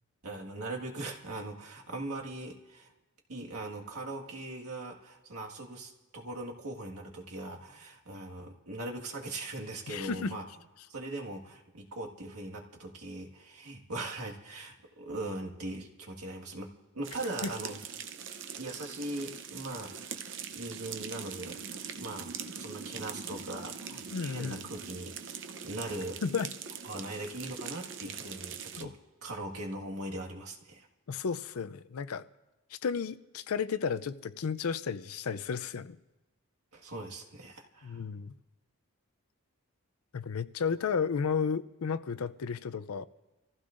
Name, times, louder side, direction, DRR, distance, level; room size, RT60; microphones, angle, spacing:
voice 1, 0.2-2.9 3.3-10.5 10.9-17.8 18.6-22.3 22.6-26.2 26.8-30.9 36.7-38.0, right 2 dB, 85° right, 1.7 m, -40 dB
voice 2, 9.9-10.3 17.4-17.5 24.1-24.7 26.2-26.5 28.8-28.9 31.1-32.3 32.7-36.0 37.8-38.3 40.1-43.1, left 6 dB, 75° left, 0.5 m, -33 dB
sound 1, 17.0-28.9, right 7 dB, 55° right, 0.7 m, -42 dB
27.0 x 15.0 x 2.5 m
head